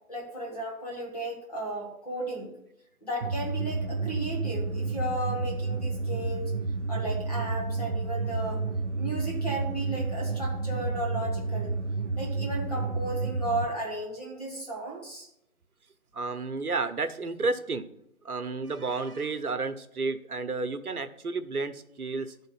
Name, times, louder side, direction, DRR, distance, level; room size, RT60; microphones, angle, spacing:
voice 1, 0.1-2.5 3.0-6.5 6.9-8.6 9.0-11.7 12.1-15.3, right 1 dB, 25° left, 0 dB, 2.0 m, -34 dB
sound 1, 3.2-13.7, right 3 dB, 55° right, 0.6 m, -30 dB
voice 2, 16.1-17.9 18.2-22.3, right 3 dB, 85° right, 9 dB, 1.0 m, -31 dB
11.0 x 3.9 x 5.6 m, 0.79 s
figure-of-eight pair, 170°, 43 cm